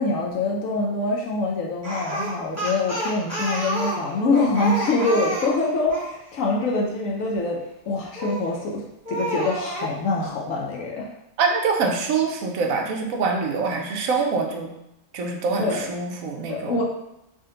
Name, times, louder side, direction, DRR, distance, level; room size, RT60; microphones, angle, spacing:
voice 1, 0.0-11.1 15.6-15.9 16.5-16.8, left 3 dB, 65° left, -2 dB, 0.9 m, -25 dB
Speech, 1.8-6.1 8.2-8.6 9.0-9.9, right 1 dB, 10° right, 1.1 m, -29 dB
voice 2, 11.4-14.7 15.1-16.8, right 4 dB, 70° right, 2 dB, 1.0 m, -24 dB
3.7 x 2.5 x 3.8 m, 0.86 s
omnidirectional pair, 1.7 m